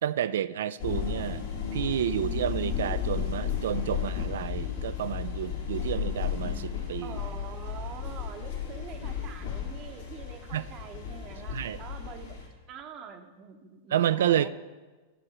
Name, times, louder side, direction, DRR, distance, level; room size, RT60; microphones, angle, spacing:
voice 1, 0.0-1.4 1.7-7.2 10.5-10.7 11.5-11.8 13.9-14.5, right 10 dB, 70° right, 16 dB, 0.3 m, -30 dB
sound 1, 0.8-12.5, left 8 dB, 80° left, 2.1 m, -34 dB
voice 2, 7.0-12.4 12.7-14.5, right 7 dB, 40° right, 7 dB, 0.8 m, -45 dB
10.0 x 6.0 x 4.9 m, 1.3 s
hypercardioid pair, 100°, 0 cm